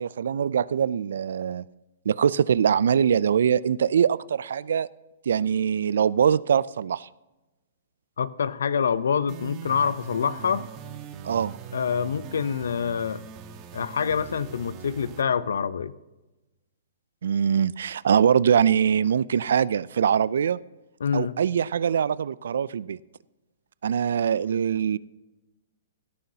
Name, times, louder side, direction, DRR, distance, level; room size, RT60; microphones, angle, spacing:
voice 1, 0.0-1.6 2.1-4.9 5.3-7.1 11.2-11.6 17.2-20.6 21.1-23.0 23.8-25.0, right 8 dB, 70° right, 21 dB, 0.3 m, -23 dB
voice 2, 8.2-10.6 11.7-13.2 13.7-15.9 21.0-21.3, left 6 dB, 75° left, 17 dB, 0.6 m, -26 dB
sound 1, 9.3-15.2, right 8 dB, 35° right, 1.3 m, -41 dB
16.5 x 13.0 x 2.8 m, 1.1 s
hypercardioid pair, 130°, 0 cm